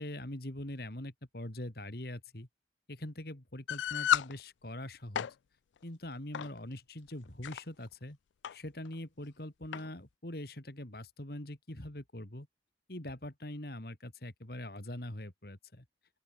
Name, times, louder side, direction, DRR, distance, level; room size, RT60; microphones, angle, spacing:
voice 1, 0.0-2.5 2.9-5.3 5.8-8.2 8.5-12.5 12.9-15.8, left 1 dB, 55° left, 2.8 m, -43 dB
sound 1, 3.7-4.3 5.0-5.3 6.3-6.5 7.2-7.6 8.4-8.6 8.9-9.0 9.7-9.9, left 9 dB, 85° left, 0.4 m, -31 dB
open air
head